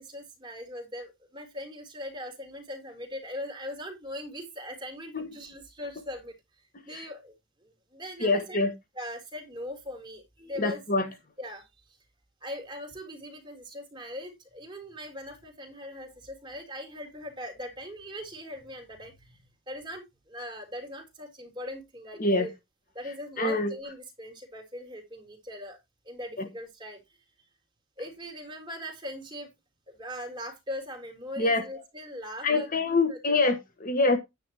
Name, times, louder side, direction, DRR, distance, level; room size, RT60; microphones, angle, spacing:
voice 1, 0.0-6.3 6.9-7.3 7.6-8.6 8.9-10.8 11.4-11.7 12.4-19.4 19.7-22.5 22.9-25.8 26.1-27.0 28.0-29.5 29.9-33.4, left 1 dB, 20° right, 3.6 m, -40 dB
voice 2, 8.2-8.7 10.6-11.0 22.2-22.5 23.4-23.7 31.4-31.6 32.4-34.2, left 3 dB, 40° left, 1.4 m, -25 dB
9.9 x 9.8 x 3.0 m
head